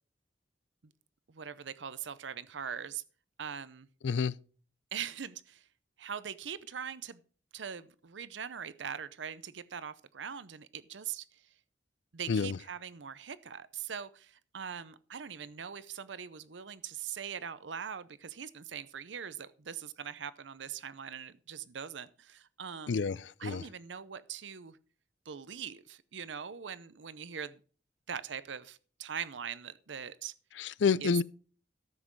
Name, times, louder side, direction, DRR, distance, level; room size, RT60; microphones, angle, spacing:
voice 1, 1.3-3.0 3.4-3.9 4.9-5.6 6.0-7.2 7.5-11.4 12.1-23.1 23.4-24.8 25.3-27.6 28.1-30.3 31.0-31.1, right 7 dB, 80° right, 0.7 m, -42 dB
voice 2, 4.0-4.3 12.3-12.6 22.9-23.6 30.6-31.2, left 5 dB, 75° left, 0.4 m, -29 dB
14.0 x 7.5 x 4.6 m
head